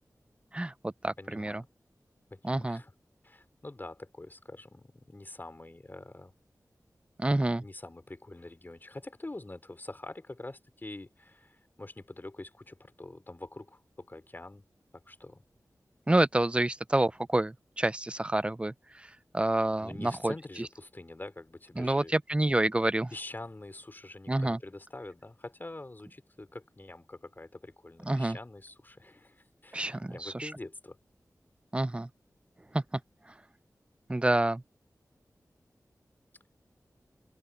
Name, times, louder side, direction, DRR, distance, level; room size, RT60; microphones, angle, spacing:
voice 1, 0.5-1.6 2.4-2.8 7.2-7.6 16.1-19.1 19.3-20.3 21.8-23.1 24.3-24.6 28.1-28.4 29.7-30.5 31.7-32.1 32.7-32.8 34.1-34.6, right 1 dB, 20° right, 0.4 m, -28 dB
voice 2, 1.2-1.7 2.3-2.9 3.2-6.3 7.6-14.7 14.9-15.4 19.8-22.1 23.1-31.0, left 2 dB, 30° left, 3.5 m, -45 dB
open air
wide cardioid pair, 75°, 6 cm